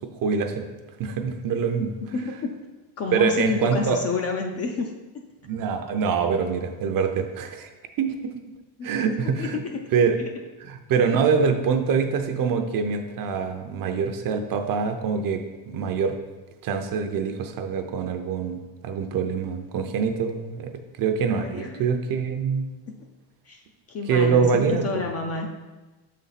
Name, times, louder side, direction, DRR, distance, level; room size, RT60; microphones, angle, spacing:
voice 1, 0.2-0.7 1.0-1.9 3.1-4.0 5.4-7.7 8.0-8.3 8.8-9.6 9.9-10.2 10.7-16.2 16.6-20.7 21.0-22.7 24.1-25.0, right 6 dB, 45° right, 6 dB, 0.6 m, -24 dB
voice 2, 2.0-2.5 3.0-4.9 8.8-9.8 10.2-10.3 21.3-21.9 22.9-23.0 23.4-25.5, left 4 dB, 35° left, 3 dB, 0.4 m, -30 dB
6.8 x 4.2 x 4.0 m, 1.2 s
cardioid pair, 155°, 49 cm